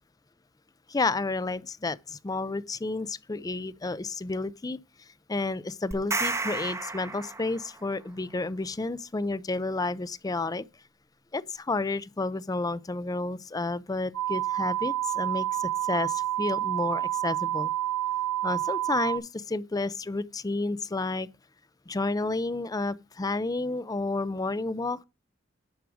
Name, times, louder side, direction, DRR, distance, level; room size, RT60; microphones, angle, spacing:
voice 1, 0.9-4.8 5.3-10.6 11.3-17.7 18.4-21.3 21.9-25.0, left 3 dB, 20° left, 0.5 m, -31 dB
sound 1, 5.9-7.9, right 3 dB, 15° right, 0.8 m, -32 dB
sound 2, 14.1-19.2, right 13 dB, 85° right, 1.6 m, -29 dB
10.5 x 4.8 x 6.2 m
head